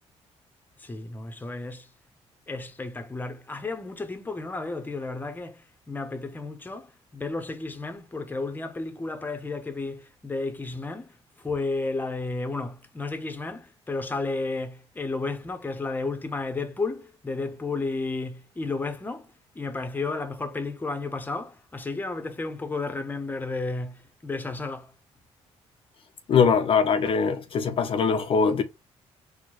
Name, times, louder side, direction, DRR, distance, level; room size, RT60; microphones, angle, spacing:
voice 1, 0.8-1.9 2.5-19.3 19.5-24.9, left 3 dB, 15° left, 0.7 m, -32 dB
voice 2, 26.3-28.6, left 6 dB, 50° left, 0.5 m, -22 dB
4.3 x 2.1 x 3.0 m
cardioid pair, 95°, 12 cm